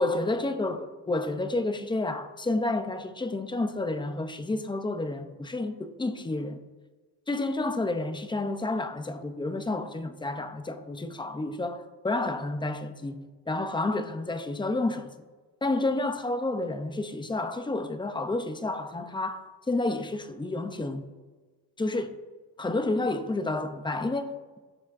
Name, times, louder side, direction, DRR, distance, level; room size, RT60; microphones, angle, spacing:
voice 1, 0.0-6.6 7.3-15.1 15.6-21.1 21.8-22.2 22.6-24.6, left 2 dB, 10° left, 0.5 m, -30 dB
18.0 x 7.0 x 2.5 m
cardioid pair, 155°, 40 cm